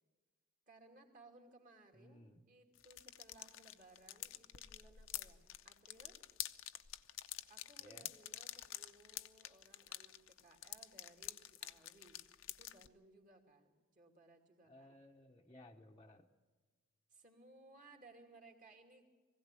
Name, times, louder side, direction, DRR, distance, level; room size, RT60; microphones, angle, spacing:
voice 1, 0.7-6.2 7.5-12.2 12.5-15.0 17.1-19.1, right 2 dB, 40° right, 3 dB, 2.7 m, -63 dB
voice 2, 1.9-2.4 7.8-8.1 14.6-16.3, left 1 dB, 15° left, -2 dB, 0.8 m, -60 dB
sound 1, 2.7-12.9, left 13 dB, 65° left, 0.7 m, -48 dB
20.5 x 16.0 x 9.0 m, 1.3 s
head